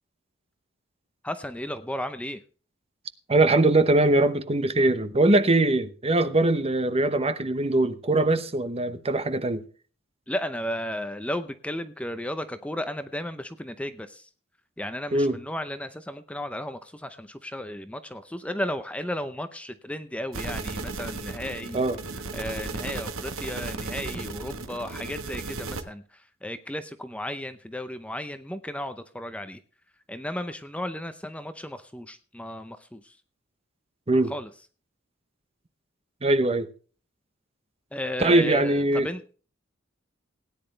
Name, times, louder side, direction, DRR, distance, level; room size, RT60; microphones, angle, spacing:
voice 1, 1.2-2.4 10.3-14.3 14.8-21.8 22.3-29.6 30.1-33.2 34.3-34.5 37.9-39.3, left 1 dB, 5° left, 0.6 m, -34 dB
voice 2, 3.3-9.6 15.1-15.4 21.7-22.0 34.1-34.3 36.2-36.7 38.2-39.1, right 2 dB, 30° right, 0.9 m, -22 dB
sound 1, 20.3-25.8, right 3 dB, 90° right, 1.3 m, -35 dB
17.5 x 9.9 x 3.3 m
head